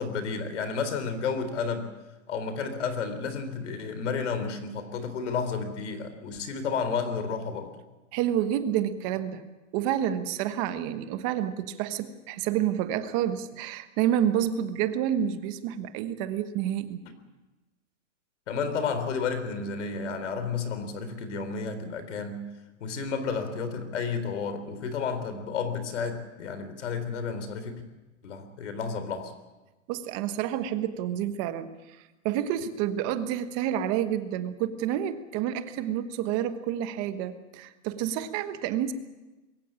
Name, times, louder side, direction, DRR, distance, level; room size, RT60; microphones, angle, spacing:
voice 1, 0.0-1.9 2.3-7.7 18.5-22.5 22.8-27.8 28.2-29.3, left 5 dB, 65° left, 10 dB, 3.9 m, -31 dB
voice 2, 8.1-9.4 9.7-17.0 29.9-31.7 32.2-38.9, right 10 dB, 25° right, 10 dB, 1.2 m, -29 dB
22.0 x 16.5 x 8.8 m, 1.1 s
hypercardioid pair, 165°, 39 cm